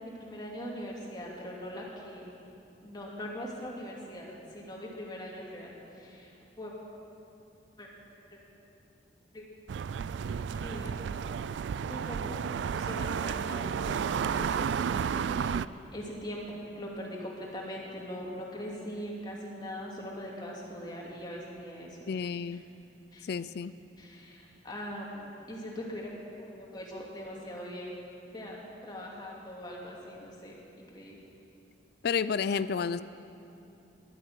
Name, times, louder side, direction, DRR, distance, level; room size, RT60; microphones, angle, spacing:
voice 1, 0.0-2.3 2.8-6.7 7.8-7.9 8.3-8.4 9.3-9.4 10.6-11.2 11.8-15.5 15.9-22.0 23.1-23.3 24.0-28.0 28.3-28.6 28.8-31.2, equal, 25° left, -3 dB, 2.6 m, -41 dB
sound 1, 9.7-15.6, right 7 dB, 80° right, 0.3 m, -32 dB
voice 2, 22.1-22.6 23.2-23.7 32.0-33.0, left 6 dB, 65° left, 14 dB, 0.4 m, -30 dB
12.0 x 10.5 x 9.2 m, 2.8 s
head